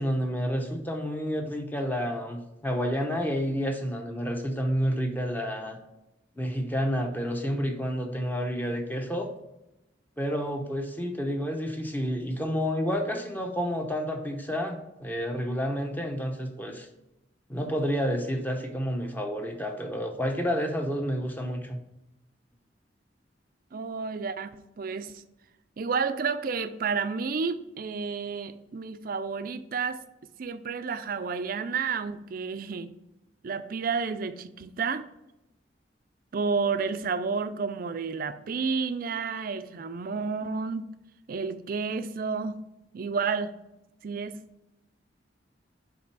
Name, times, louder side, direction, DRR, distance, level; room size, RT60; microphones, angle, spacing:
voice 1, 0.0-5.8 6.4-9.3 10.2-16.9 17.5-21.8, equal, 10° left, 3 dB, 0.7 m, -30 dB
voice 2, 23.7-25.2 25.8-30.0 30.4-32.9 33.4-35.1 36.3-40.9 41.3-42.6 42.9-43.5 44.0-44.4, right 5 dB, 50° right, 12 dB, 0.4 m, -31 dB
7.3 x 3.4 x 4.6 m, 0.91 s
head